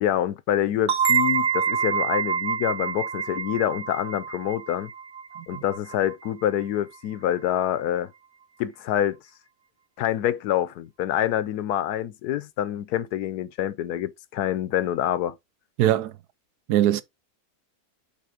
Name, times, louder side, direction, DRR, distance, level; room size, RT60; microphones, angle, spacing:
voice 1, 0.0-4.9 5.5-8.1 8.6-9.2 10.0-15.4, left 11 dB, 85° left, 1.2 m, -26 dB
sound 1, 0.9-6.3, right 7 dB, 45° right, 0.7 m, -27 dB
voice 2, 15.8-16.2 16.7-17.0, right 12 dB, 85° right, 1.3 m, -22 dB
8.5 x 3.6 x 4.9 m
omnidirectional pair, 1.6 m